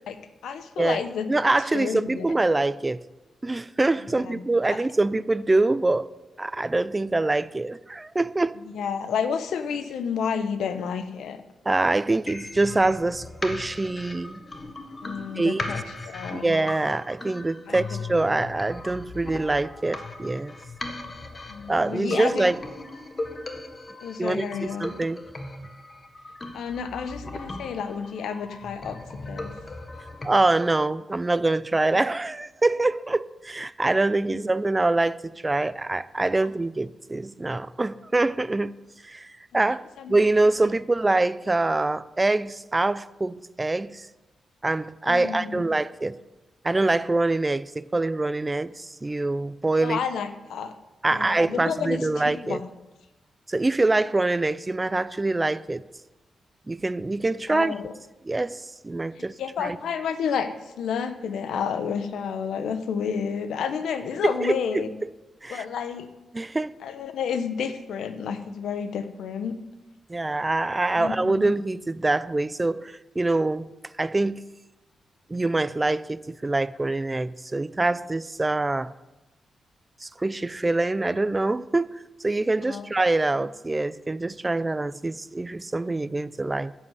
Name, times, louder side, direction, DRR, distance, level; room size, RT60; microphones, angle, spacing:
voice 1, 0.4-1.3 1.7-2.2 4.1-4.4 4.7-4.8 8.6-11.4 15.0-16.5 17.7-18.0 21.5-22.5 24.0-24.9 26.5-29.5 34.3-34.4 36.4-36.5 40.0-40.1 45.1-45.6 49.8-50.7 51.1-52.6 57.5-57.9 59.1-64.9 65.5-66.1 66.8-69.6 71.0-71.5 82.7-82.9, left 7 dB, 85° left, 0.9 m, -30 dB
voice 2, 1.3-3.0 3.4-6.1 6.4-8.6 11.7-14.4 15.4-15.6 16.3-20.6 21.7-22.6 24.2-25.2 30.2-38.7 39.0-39.8 40.1-44.1 44.6-46.2 46.6-50.0 51.0-52.6 53.5-55.8 56.7-57.7 58.3-59.8 64.2-65.1 65.4-65.7 66.3-66.7 70.1-73.7 74.0-74.4 75.3-78.9 80.0-86.7, right 2 dB, 20° right, 0.4 m, -25 dB
sound 1, 12.3-30.3, left 2 dB, 30° left, 1.4 m, -38 dB
11.0 x 7.7 x 8.0 m
cardioid pair, 85°, 0 cm